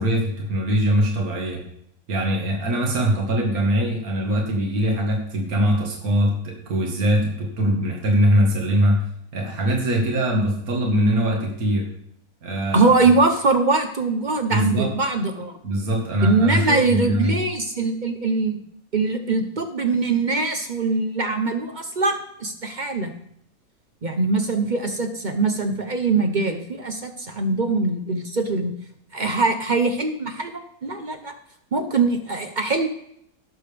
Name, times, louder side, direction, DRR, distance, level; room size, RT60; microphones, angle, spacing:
voice 1, 0.0-1.6 2.1-9.0 9.3-11.9 12.4-12.9 14.5-14.9 15.6-17.4, equal, 65° right, 0 dB, 2.2 m, -22 dB
voice 2, 12.7-15.5 16.2-18.6 18.9-23.1 24.0-28.7 29.1-31.3 31.7-32.9, right 3 dB, 45° right, 7 dB, 0.6 m, -22 dB
18.0 x 6.9 x 3.4 m, 0.73 s
omnidirectional pair, 1.7 m